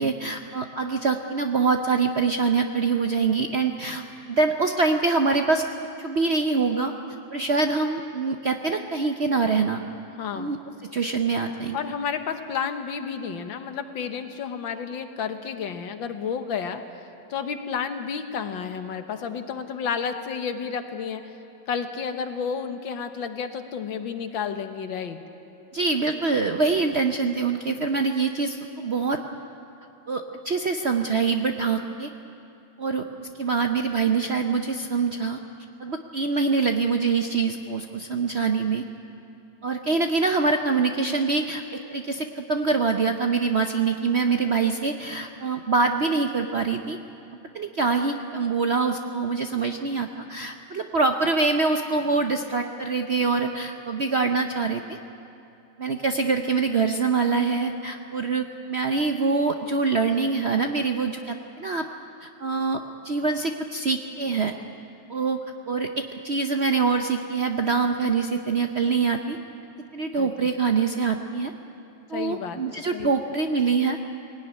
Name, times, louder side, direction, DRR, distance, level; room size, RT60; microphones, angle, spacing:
voice 1, 0.0-5.7 6.0-6.9 7.3-9.8 10.3-10.6 10.9-11.8 25.7-29.2 30.1-32.1 32.8-33.1 33.4-35.4 35.8-38.8 39.6-47.0 47.5-55.0 55.8-61.8 62.2-64.5 65.1-65.4 65.7-69.4 69.9-71.5 72.1-74.0, right 4 dB, 55° right, 5 dB, 0.7 m, -24 dB
voice 2, 10.2-10.5 11.7-16.8 17.3-21.3 21.7-25.2 70.2-70.3 72.1-73.1, left 6 dB, 80° left, 7 dB, 1.9 m, -31 dB
20.5 x 17.5 x 9.7 m, 2.9 s
omnidirectional pair, 2.1 m